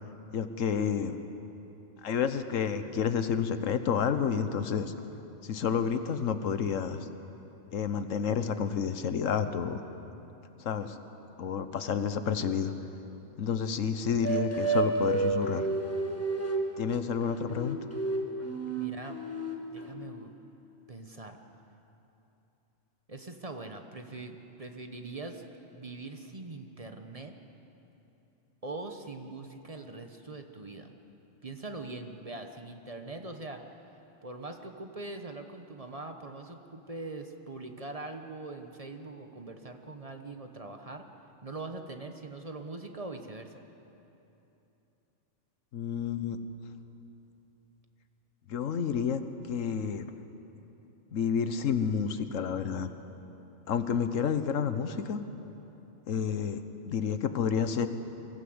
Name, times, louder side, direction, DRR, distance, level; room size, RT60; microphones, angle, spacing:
voice 1, 0.3-1.1 2.0-4.9 5.4-7.1 7.7-9.8 10.6-11.0 11.4-12.7 13.4-15.7 16.8-17.8 45.7-46.4 48.5-49.2 49.5-50.0 51.1-52.9 53.7-55.2 56.1-57.9, left 7 dB, 85° left, 10 dB, 1.3 m, -30 dB
sound 1, 14.2-16.7 17.3-19.9, right 3 dB, 10° left, 1.5 m, -30 dB
voice 2, 18.8-19.2 19.7-20.3 20.9-21.4 23.1-25.4 25.7-27.3 28.6-30.9 31.4-33.6 34.2-41.1 41.4-43.6, right 2 dB, 30° right, 5 dB, 1.0 m, -42 dB
23.5 x 15.0 x 7.9 m, 3.0 s
omnidirectional pair, 1.3 m